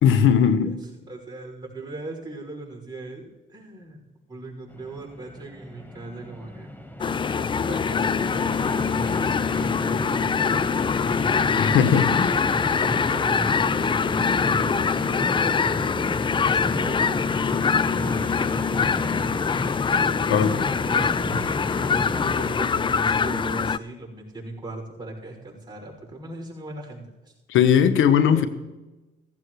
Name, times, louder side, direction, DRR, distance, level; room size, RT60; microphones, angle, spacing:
voice 1, 0.0-0.8 11.6-12.3 20.3-20.6 27.5-28.5, left 8 dB, 80° left, 1.1 m, -19 dB
voice 2, 0.6-4.0 4.3-6.7 7.4-10.8 11.5-17.5 17.9-19.3 19.9-27.3 28.3-28.5, right 2 dB, 20° right, 5.8 m, -39 dB
sound 1, 4.7-22.5, left 1 dB, 10° left, 1.2 m, -34 dB
sound 2, 7.0-23.8, left 6 dB, 25° left, 0.4 m, -24 dB
sound 3, 10.1-18.1, right 4 dB, 45° right, 4.3 m, -45 dB
16.5 x 15.0 x 3.2 m
cardioid pair, 90°, 20 cm